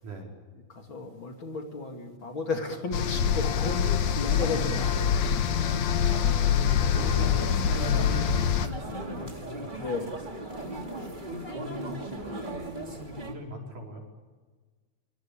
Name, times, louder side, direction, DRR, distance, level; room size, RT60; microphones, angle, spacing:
voice 1, 0.0-0.4 6.0-9.8 10.5-14.0, equal, 75° right, 0 dB, 6.4 m, -40 dB
voice 2, 0.7-5.2 8.8-9.1 9.8-10.1, left 3 dB, 40° left, 3 dB, 2.9 m, -34 dB
sound 1, 2.9-8.7, left 8 dB, 65° left, 2.4 m, -25 dB
sound 2, 3.2-13.3, right 2 dB, 15° right, 2.6 m, -39 dB
26.5 x 24.0 x 8.8 m, 1.4 s
omnidirectional pair, 3.6 m